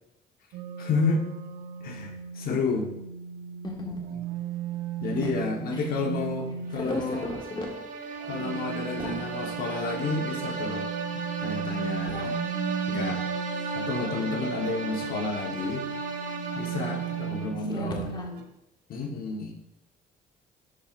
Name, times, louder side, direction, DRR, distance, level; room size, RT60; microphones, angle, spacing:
sound 1, 0.5-7.0 8.2-18.5, right 8 dB, 75° right, 0.7 m, -36 dB
voice 1, 0.8-1.2 1.8-2.9 5.0-7.3 8.2-10.9 11.4-12.2 12.9-13.2 13.7-15.8 16.5-18.1 18.9-19.5, left 4 dB, 60° left, 2 dB, 1.1 m, -30 dB
voice 2, 3.6-4.1 5.2-5.3 5.7-5.9 6.7-7.7 8.1-8.2 9.0-9.2 12.1-12.4 17.7-18.3, left 2 dB, 25° left, 0 dB, 1.5 m, -35 dB
sound 2, 6.7-17.7, right 4 dB, 50° right, 1.0 m, -35 dB
11.0 x 4.4 x 2.5 m, 0.89 s
cardioid pair, 110°, 17 cm